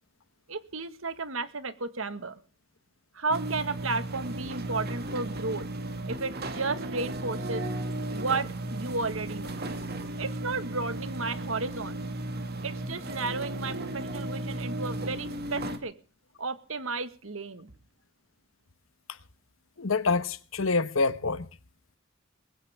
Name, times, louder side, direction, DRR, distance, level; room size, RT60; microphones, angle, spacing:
voice 1, 0.5-2.4 3.1-5.7 6.1-7.6 8.1-9.6 10.2-12.0 12.6-15.9 16.4-17.7, right 3 dB, 85° right, 1.7 m, -33 dB
sound 1, 3.3-15.8, right 1 dB, 50° right, 2.3 m, -35 dB
voice 2, 19.8-21.5, left 4 dB, 85° left, 1.2 m, -26 dB
21.0 x 16.5 x 3.6 m
head